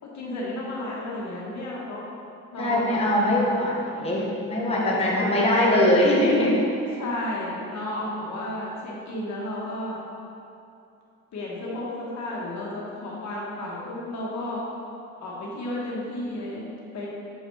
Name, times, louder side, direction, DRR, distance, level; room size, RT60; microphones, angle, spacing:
voice 1, 0.0-2.1 2.5-3.4 4.7-5.3 5.6-5.8 7.0-10.0 11.3-14.6 15.2-17.1, left 1 dB, 65° left, -5 dB, 1.6 m, -33 dB
voice 2, 2.6-6.6, left 1 dB, 20° left, -5 dB, 1.2 m, -22 dB
7.1 x 4.2 x 4.7 m, 2.6 s
cardioid pair, 90°, 30 cm